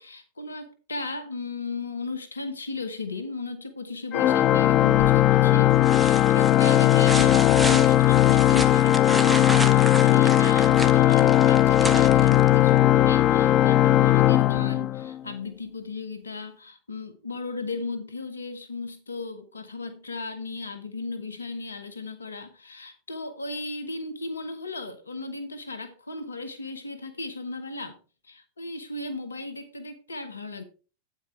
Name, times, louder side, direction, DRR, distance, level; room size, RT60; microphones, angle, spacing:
voice 1, 0.0-28.0 28.2-30.7, left 3 dB, 90° left, 1.2 m, -36 dB
Organ, 4.1-15.3, left 14 dB, 40° left, 0.4 m, -18 dB
sound 1, 5.0-5.4 5.8-12.8 14.6-14.7, right 2 dB, 5° right, 1.1 m, -33 dB
8.9 x 8.8 x 3.2 m
hypercardioid pair, 95°, 0 cm